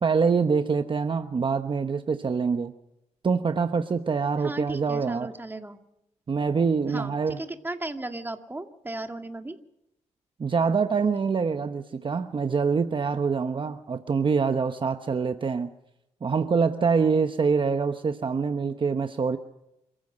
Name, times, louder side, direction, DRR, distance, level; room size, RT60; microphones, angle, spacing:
voice 1, 0.0-2.7 3.2-5.3 6.3-7.4 10.4-15.7 16.2-19.4, right 5 dB, 40° right, 8 dB, 1.0 m, -25 dB
voice 2, 4.4-5.8 6.9-9.6, right 2 dB, 15° right, 6 dB, 2.1 m, -36 dB
27.0 x 15.5 x 6.4 m, 0.87 s
cardioid pair, 80°, 13 cm